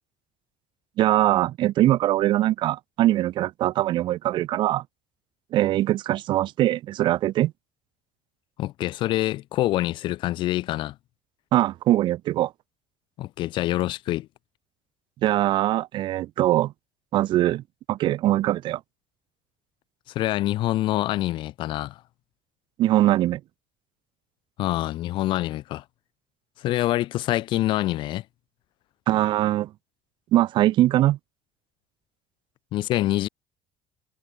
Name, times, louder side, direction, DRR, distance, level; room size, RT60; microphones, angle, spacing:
voice 1, 1.0-4.8 5.5-7.5 11.5-12.5 15.2-16.7 17.1-18.8 22.8-23.4 29.1-29.7 30.3-31.2, right 14 dB, 55° right, 0.6 m, -22 dB
voice 2, 8.6-11.0 13.2-14.3 20.1-22.0 24.6-25.8 26.6-28.2 32.7-33.3, left 15 dB, 55° left, 0.5 m, -25 dB
cardioid pair, 135°, 10 cm